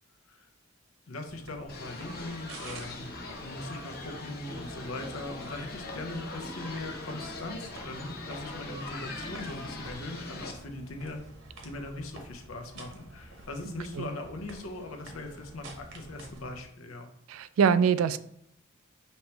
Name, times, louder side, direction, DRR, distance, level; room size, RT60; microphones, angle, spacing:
voice 1, 1.1-3.1 3.4-11.2 11.6-17.1, left 2 dB, 85° left, 4 dB, 0.8 m, -40 dB
sound 1, 1.2-16.6, right 1 dB, 65° right, 0.9 m, -49 dB
sound 2, 1.7-10.5, left 2 dB, 50° left, 0.9 m, -41 dB
voice 2, 17.3-18.2, right 7 dB, 85° right, 14 dB, 0.3 m, -23 dB
5.3 x 2.9 x 3.3 m, 0.72 s
head